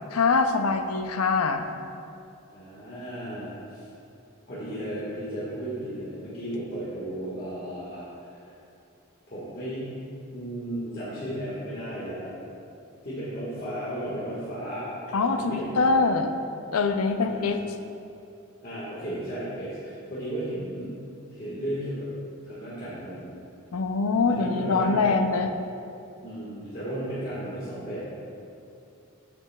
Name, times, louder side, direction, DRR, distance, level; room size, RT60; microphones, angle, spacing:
voice 1, 0.1-1.7 15.1-16.4 16.7-17.6 23.7-25.5, left 4 dB, 90° left, 7 dB, 0.5 m, -23 dB
voice 2, 2.5-3.9 4.5-8.5 9.3-9.9 10.3-12.3 13.0-14.9 15.2-16.0 17.2-17.4 18.6-21.0 21.3-22.1 22.4-23.3 24.3-25.2 26.2-28.0, right 1 dB, 45° left, -11 dB, 1.5 m, -34 dB
8.7 x 7.8 x 2.3 m, 2.7 s
head